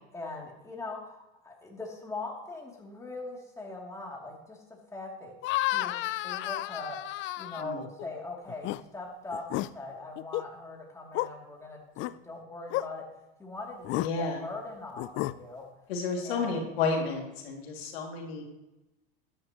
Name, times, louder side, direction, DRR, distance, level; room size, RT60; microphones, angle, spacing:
voice 1, 0.1-4.6 4.9-5.3 5.7-7.0 7.4-13.0 13.4-15.7 16.2-16.6, left 3 dB, 10° left, -2 dB, 2.7 m, -41 dB
sound 1, 5.4-8.1 8.5-8.8 9.3-9.7 10.2-10.5 11.1-11.3 12.0-12.1 12.7-12.9 13.8-14.1 15.0-15.4, left 17 dB, 40° left, 0.4 m, -31 dB
voice 2, 14.0-14.4 15.9-18.4, left 4 dB, 85° left, 0 dB, 2.5 m, -31 dB
13.0 x 10.0 x 3.0 m, 0.95 s
supercardioid pair, 110°, 30 cm